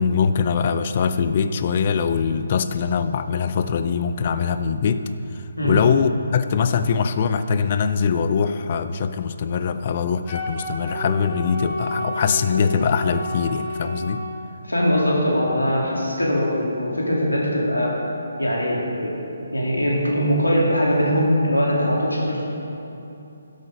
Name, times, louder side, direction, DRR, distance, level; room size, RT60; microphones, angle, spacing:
voice 1, 0.0-5.0 5.6-14.2, left 6 dB, 35° left, 11 dB, 0.5 m, -22 dB
Wind instrument woodwind instrument, 10.2-14.2, left 1 dB, 15° left, 2.8 m, -30 dB
voice 2, 14.6-17.9 18.4-19.2 19.5-22.4, equal, 80° left, -3 dB, 2.7 m, -21 dB
12.0 x 7.9 x 5.2 m, 2.9 s
figure-of-eight pair, 145°, 0 cm